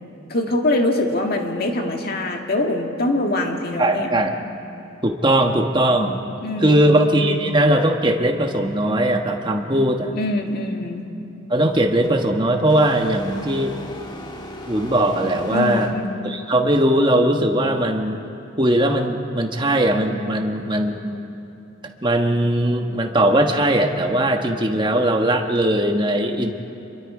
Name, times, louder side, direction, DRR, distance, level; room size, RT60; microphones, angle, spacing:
voice 1, 0.3-4.1 6.4-6.9 7.2-7.4 10.1-11.1 15.5-16.1, left 1 dB, 50° left, 2 dB, 1.9 m, -23 dB
voice 2, 3.8-4.4 5.0-6.2 6.6-10.2 11.5-13.7 14.7-15.9 16.2-18.2 18.6-21.1 22.0-26.5, right 1 dB, 25° right, 4 dB, 1.3 m, -19 dB
sound 1, 12.0-12.2 12.7-16.3, left 1 dB, 20° left, 1.7 m, -37 dB
28.0 x 22.5 x 5.0 m, 2.8 s
head